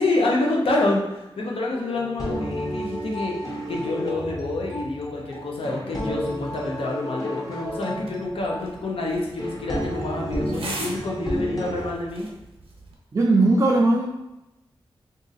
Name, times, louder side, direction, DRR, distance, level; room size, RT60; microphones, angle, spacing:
voice 1, 0.0-3.3 3.7-12.3, left 2 dB, 80° left, -2 dB, 0.7 m, -27 dB
sound 1, 1.7-11.9, equal, 40° left, 0.9 m, -32 dB
sound 2, 7.9-12.9, right 2 dB, 85° right, 0.7 m, -40 dB
voice 2, 13.1-14.1, right 2 dB, 35° right, -4 dB, 0.4 m, -18 dB
2.6 x 2.5 x 4.0 m, 0.98 s
wide cardioid pair, 95°, 9 cm